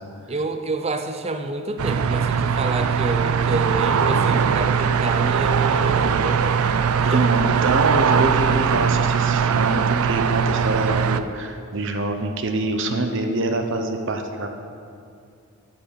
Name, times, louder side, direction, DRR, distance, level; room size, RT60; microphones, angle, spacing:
voice 1, 0.3-7.3, right 2 dB, 25° right, 7 dB, 0.6 m, -29 dB
sound 1, 1.8-11.2, right 6 dB, 75° right, 0.4 m, -20 dB
voice 2, 7.0-14.5, right 2 dB, 55° right, 5 dB, 0.9 m, -25 dB
11.5 x 5.7 x 6.4 m, 2.5 s
head